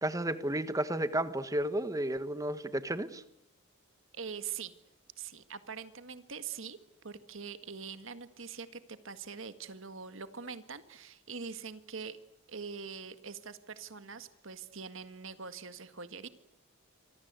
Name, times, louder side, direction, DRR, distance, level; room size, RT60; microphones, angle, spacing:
voice 1, 0.0-3.2, right 1 dB, 15° right, 12 dB, 1.4 m, -32 dB
voice 2, 4.1-4.7 5.2-6.8 7.0-12.2 12.5-16.3, right 6 dB, 60° right, 11 dB, 1.8 m, -43 dB
27.0 x 25.0 x 8.2 m, 0.79 s
head